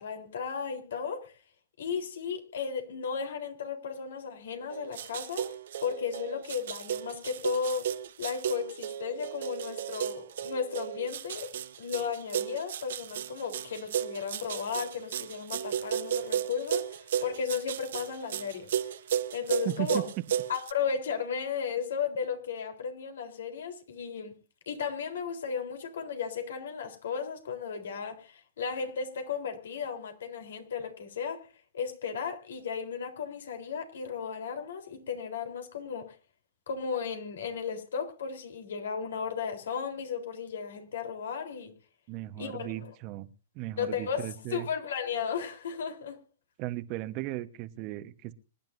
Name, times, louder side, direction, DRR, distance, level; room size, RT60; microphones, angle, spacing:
voice 1, 0.0-1.3 1.8-5.5 5.8-7.9 8.2-11.5 11.8-18.7 19.3-20.0 20.5-24.4 24.7-31.5 31.7-36.1 36.7-41.7 42.4-42.9 43.8-46.2, left 6 dB, 75° left, 3.8 m, -35 dB
sound 1, 4.7-20.7, right 9 dB, 70° right, 1.2 m, -34 dB
voice 2, 19.6-20.0 42.1-43.3 43.5-44.7 46.6-48.3, right 16 dB, 40° right, 1.2 m, -36 dB
26.0 x 10.5 x 2.7 m
hypercardioid pair, 125°, 0 cm